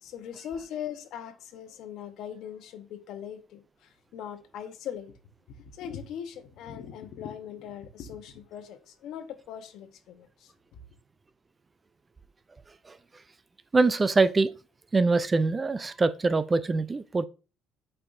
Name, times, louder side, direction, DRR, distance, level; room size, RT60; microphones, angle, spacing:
voice 1, 0.0-5.1 5.5-10.5, left 9 dB, 70° left, 1.0 m, -40 dB
voice 2, 13.7-14.5 14.9-17.3, right 3 dB, 20° right, 0.4 m, -23 dB
8.6 x 4.6 x 2.6 m
cardioid pair, 125°, 0 cm